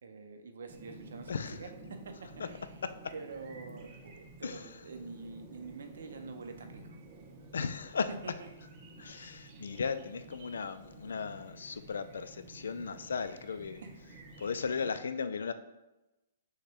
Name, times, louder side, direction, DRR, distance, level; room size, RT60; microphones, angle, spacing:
voice 1, 0.0-2.7 3.1-7.0 8.2-8.5 13.8-13.9, right 4 dB, 75° right, 6 dB, 0.6 m, -46 dB
Chirp tweet, 0.7-14.9, right 2 dB, 30° right, 0.6 m, -52 dB
voice 2, 1.3-1.6 2.4-2.5 3.0-3.1 4.4-4.8 7.5-8.1 9.0-13.8 14.4-15.5, left 5 dB, 85° left, 11 dB, 0.3 m, -36 dB
6.3 x 2.2 x 3.4 m, 0.99 s
hypercardioid pair, 160°, 0 cm